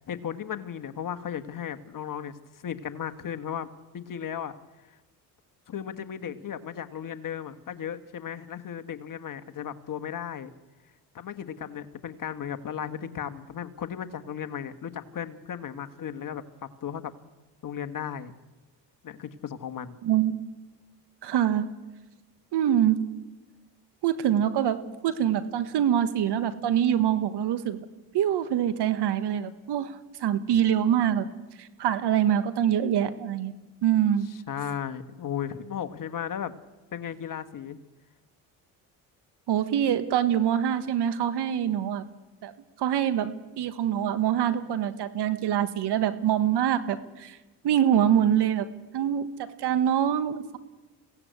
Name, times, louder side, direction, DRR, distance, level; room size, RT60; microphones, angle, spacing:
voice 1, 0.0-3.7 3.9-4.5 4.8-5.0 5.7-10.5 11.1-17.1 17.6-18.3 19.0-20.0 34.5-36.5 36.9-37.8, left 8 dB, 45° left, 9 dB, 1.5 m, -35 dB
voice 2, 20.0-20.4 21.2-21.6 22.5-23.0 24.0-27.8 28.1-31.3 31.6-33.5 33.8-34.3 39.5-42.0 42.4-42.5 42.8-47.4 47.6-48.7 48.9-49.3 49.6-50.6, right 10 dB, 60° right, 11 dB, 1.5 m, -25 dB
21.5 x 16.5 x 8.2 m, 1.2 s
hypercardioid pair, 65°, 46 cm